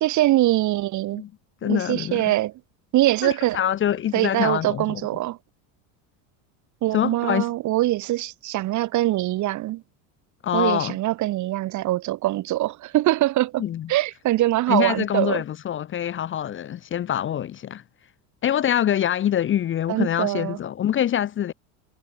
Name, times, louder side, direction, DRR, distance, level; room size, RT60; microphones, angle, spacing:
voice 1, 0.0-1.2 1.6-2.5 2.9-3.6 4.1-5.4 6.8-9.8 10.5-13.6 13.9-15.4 19.9-20.6, right 16 dB, 45° right, 0.8 m, -23 dB
voice 2, 1.6-2.3 3.2-5.0 6.9-7.5 10.4-11.0 13.6-13.9 14.7-17.8 18.4-21.5, left 10 dB, 30° left, 0.6 m, -25 dB
supercardioid pair, 105°, 43 cm